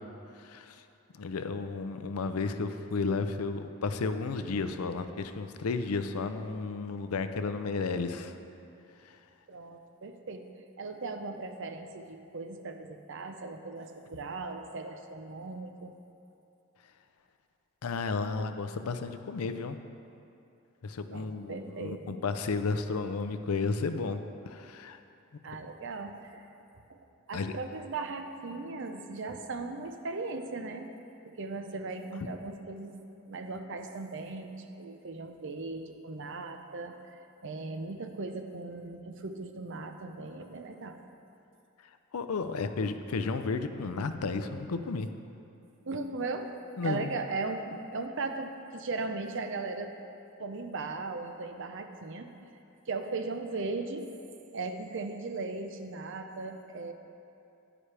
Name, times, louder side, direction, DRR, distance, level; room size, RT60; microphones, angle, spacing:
voice 1, 0.4-0.8 1.1-8.4 9.1-9.2 17.8-19.8 20.8-25.0 27.3-27.5 42.1-45.1 46.8-47.1, left 4 dB, 90° left, 9 dB, 0.5 m, -33 dB
voice 2, 9.5-10.4 10.8-15.9 21.1-22.2 25.4-26.4 26.9-27.0 27.3-30.9 31.2-32.9 33.3-41.0 45.8-46.5 46.8-49.9 50.4-52.3 52.9-54.1 54.5-56.9, right 3 dB, 55° right, 6 dB, 0.6 m, -38 dB
10.0 x 9.7 x 3.3 m, 2.7 s
head